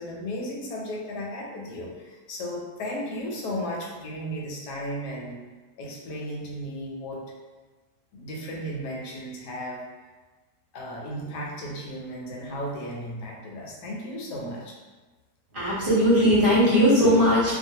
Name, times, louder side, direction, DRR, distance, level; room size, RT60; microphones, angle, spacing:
voice 1, 0.0-5.4 5.8-7.3 8.1-9.8 10.7-14.8, equal, 85° left, -2 dB, 1.2 m, -35 dB
voice 2, 15.5-17.5, equal, 45° right, -9 dB, 0.7 m, -19 dB
2.4 x 2.4 x 2.7 m, 1.3 s
omnidirectional pair, 1.7 m